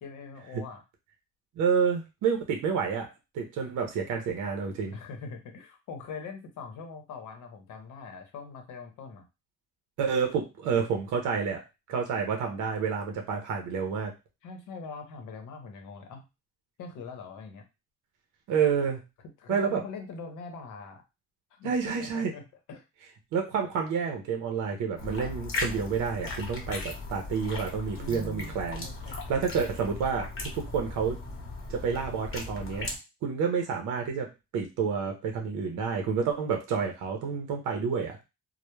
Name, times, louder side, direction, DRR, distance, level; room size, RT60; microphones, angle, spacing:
voice 1, 0.0-0.8 4.9-9.3 14.4-16.3 16.8-17.6 19.4-21.0 21.5-22.8 28.0-29.4, left 4 dB, 80° left, 4 dB, 0.8 m, -43 dB
voice 2, 1.6-3.1 3.3-4.9 10.0-11.6 11.9-14.1 18.5-19.0 19.5-19.8 21.6-22.3 23.3-28.9 29.3-31.2 31.7-32.9 33.2-34.3 34.5-38.2, right 6 dB, 85° right, 3 dB, 0.6 m, -29 dB
sound 1, 25.0-33.0, left 2 dB, 45° left, 0.8 m, -37 dB
2.1 x 2.1 x 3.0 m, 0.26 s
cardioid pair, 90°, 30 cm